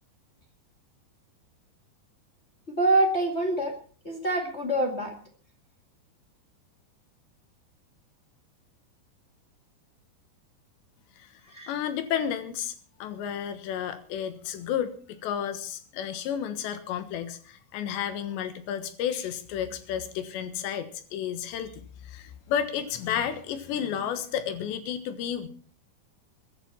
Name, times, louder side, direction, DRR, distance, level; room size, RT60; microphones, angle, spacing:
voice 1, 2.7-3.7 4.0-5.1 11.5-11.7, right 2 dB, 40° left, 1 dB, 0.9 m, -25 dB
voice 2, 11.7-12.7 13.0-25.5, left 9 dB, 85° left, 10 dB, 3.6 m, -32 dB
22.0 x 11.0 x 4.4 m, 0.41 s
omnidirectional pair, 5.0 m